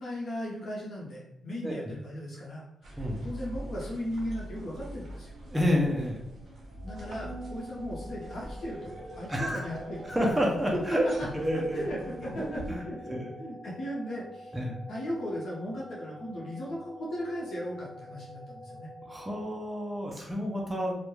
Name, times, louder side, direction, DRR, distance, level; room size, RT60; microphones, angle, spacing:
voice 1, 0.0-5.3 6.8-10.2 10.7-10.8 11.7-14.5 14.9-18.9, equal, 55° left, -4 dB, 0.6 m, -37 dB
sound 1, 2.8-12.8, right 1 dB, 50° right, 0.6 m, -43 dB
voice 2, 5.5-6.2 9.3-9.6 10.1-11.1 11.3-11.8 12.7-13.3 14.5-14.8 19.0-21.0, equal, 10° right, -2 dB, 0.4 m, -29 dB
sound 2, 6.8-19.4, equal, 35° left, 1.0 m, -47 dB
2.2 x 2.1 x 3.0 m, 0.80 s
wide cardioid pair, 175°, 0 cm